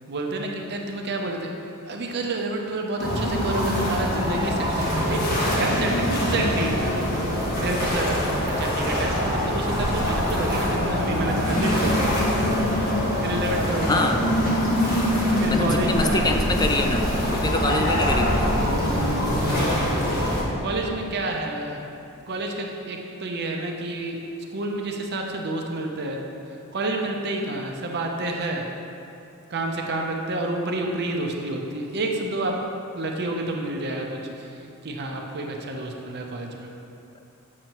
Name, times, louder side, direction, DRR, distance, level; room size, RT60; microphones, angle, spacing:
voice 1, 0.1-1.5 1.9-7.3 7.6-12.2 13.2-14.2 15.4-16.4 19.4-20.0 20.6-21.8 22.3-24.2 24.5-26.2 26.7-28.7 29.5-32.6 32.9-36.7, right 2 dB, 50° right, 1 dB, 0.7 m, -29 dB
sound 1, 3.0-20.4, equal, 45° left, 1.5 m, -24 dB
voice 2, 15.5-18.5, left 2 dB, 20° left, 5 dB, 0.3 m, -25 dB
8.7 x 6.5 x 3.0 m, 2.8 s
head